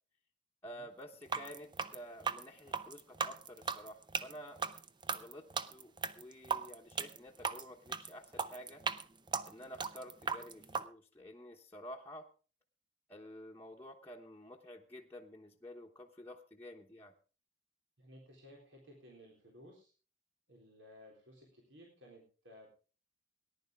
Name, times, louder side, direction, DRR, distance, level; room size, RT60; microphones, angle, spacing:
voice 1, 0.6-4.6 5.1-8.8 9.5-12.3 13.1-17.1, equal, 10° left, -2 dB, 1.1 m, -51 dB
sound 1, 1.2-10.9, right 5 dB, 25° right, 0.6 m, -38 dB
voice 2, 18.0-19.9 20.5-22.7, equal, 85° right, -1 dB, 3.8 m, -57 dB
18.5 x 11.0 x 3.5 m, 0.36 s
head